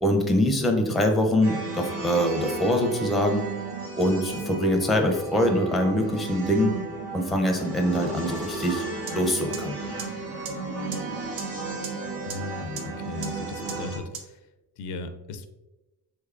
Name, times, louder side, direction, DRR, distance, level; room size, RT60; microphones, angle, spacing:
voice 1, 0.0-3.4 4.0-6.7 7.1-9.8, equal, ahead, 3 dB, 0.4 m, -24 dB
sound 1, 1.4-14.0, right 3 dB, 85° right, 1.3 m, -34 dB
sound 2, 9.1-9.2 9.5-9.6 10.0-10.1 10.4-10.5 10.9-11.0 11.4-11.5 11.8-11.9 12.3-12.4 12.8-12.9 13.2-13.3 13.7-13.8 14.1-14.2, right 6 dB, 60° right, 0.6 m, -34 dB
voice 2, 12.3-14.4 14.8-15.5, left 4 dB, 75° left, 9 dB, 0.5 m, -37 dB
3.4 x 3.2 x 2.4 m, 1.0 s
cardioid pair, 80°, 42 cm